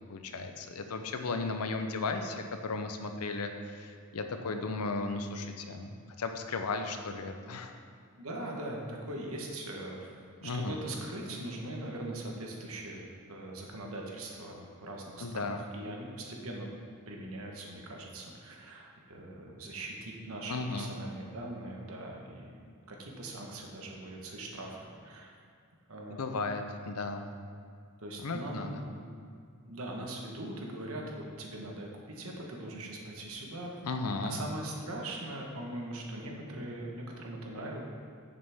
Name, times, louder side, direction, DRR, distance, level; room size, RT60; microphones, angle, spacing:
voice 1, 0.1-7.7 10.4-10.8 15.2-15.6 20.5-20.9 26.2-27.3 28.2-28.8 33.8-34.4, left 3 dB, 90° left, 6 dB, 0.7 m, -35 dB
voice 2, 8.1-10.1 10.4-16.7 17.1-22.6 22.9-25.3 25.9-26.3 28.0-29.1 29.6-33.7 34.2-37.8, right 1 dB, 70° right, 0 dB, 1.2 m, -41 dB
8.7 x 6.8 x 3.6 m, 2.3 s
head